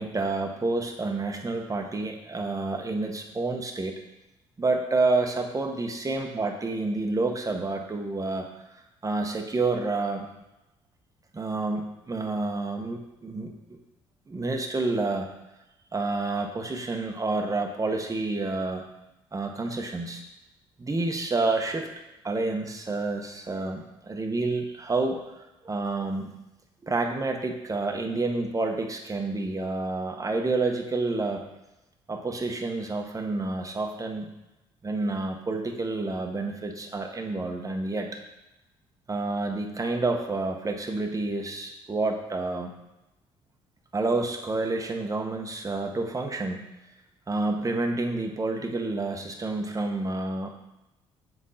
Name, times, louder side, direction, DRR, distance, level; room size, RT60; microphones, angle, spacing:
voice 1, 0.0-3.9 4.6-8.5 9.0-10.3 11.3-13.8 14.3-15.3 15.9-18.8 19.3-20.2 20.8-21.9 22.2-25.2 25.6-26.3 26.8-31.4 32.1-34.3 34.8-38.1 39.1-42.7 43.9-46.7 47.3-50.5, right 3 dB, 25° right, 3 dB, 1.3 m, -29 dB
7.6 x 4.7 x 4.2 m, 0.94 s
hypercardioid pair, 55°, 13 cm